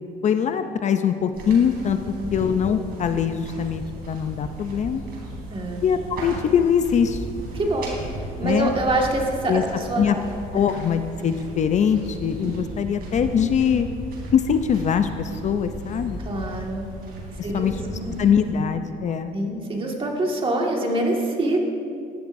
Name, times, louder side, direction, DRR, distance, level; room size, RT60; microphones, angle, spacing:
voice 1, 0.2-5.0 5.8-7.2 8.4-8.7 9.5-9.6 10.0-10.2 10.5-13.9 14.3-16.2 17.4-17.8 18.2-19.3, left 7 dB, 45° left, 9 dB, 0.5 m, -22 dB
sound 1, 1.3-18.5, right 1 dB, 65° right, 3.2 m, -36 dB
voice 2, 5.5-5.8 7.5-7.9 8.4-10.3 10.5-10.6 12.4-12.5 16.2-16.8 17.4-18.2 19.3-21.7, right 2 dB, 30° right, 0 dB, 1.9 m, -25 dB
16.5 x 11.5 x 2.7 m, 2.4 s
cardioid pair, 110°, 17 cm